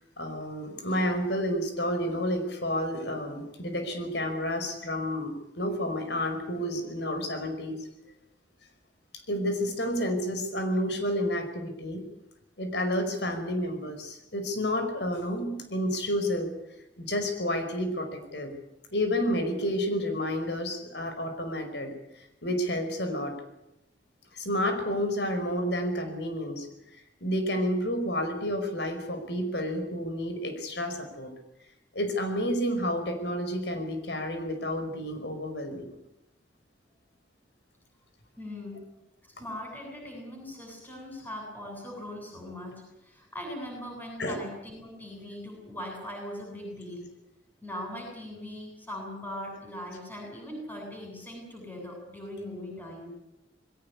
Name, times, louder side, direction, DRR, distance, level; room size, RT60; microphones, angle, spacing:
voice 1, 0.0-7.8 9.1-12.1 12.6-16.5 17.0-18.5 18.9-23.4 24.3-26.7 27.2-31.3 31.9-35.9 44.2-44.5, equal, 65° left, 7 dB, 5.1 m, -30 dB
voice 2, 38.4-38.8 39.2-47.0 47.6-53.1, left 1 dB, 10° left, -1 dB, 7.9 m, -40 dB
21.5 x 18.0 x 9.7 m, 0.89 s
head